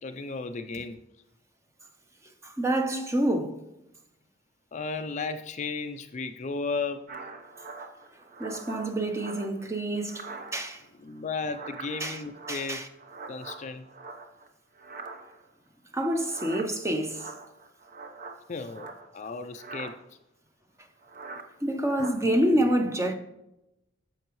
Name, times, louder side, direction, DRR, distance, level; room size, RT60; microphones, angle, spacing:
voice 1, 0.0-1.0 2.9-3.1 4.7-7.0 11.0-12.8 13.3-13.9 18.5-20.0, left 4 dB, 40° left, 0.4 m, -34 dB
voice 2, 2.4-3.6 8.4-10.3 10.5-10.8 12.0-12.2 12.5-12.9 15.9-17.3 21.6-23.1, right 1 dB, 15° right, 0.8 m, -27 dB
sound 1, 7.1-9.7 10.0-10.9 11.2-14.5 14.8-15.5 16.2-19.3 19.5-20.0 21.0-21.5 21.8-22.1, right 3 dB, 45° right, 0.9 m, -43 dB
9.9 x 7.1 x 3.1 m
head